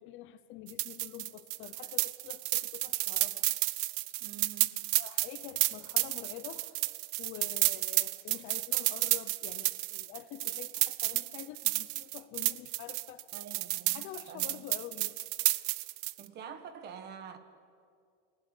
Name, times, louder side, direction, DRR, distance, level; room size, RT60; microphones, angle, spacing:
voice 1, 0.0-3.5 4.1-4.2 4.9-13.2 13.9-15.2, left 12 dB, 35° left, 12 dB, 0.8 m, -47 dB
sound 1, 0.7-16.2, right 21 dB, 50° right, 0.7 m, -31 dB
voice 2, 4.2-4.9 13.3-14.6 16.2-17.4, right 7 dB, 30° right, 10 dB, 1.5 m, -47 dB
29.5 x 18.5 x 9.0 m, 2.3 s
cardioid pair, 175°, 34 cm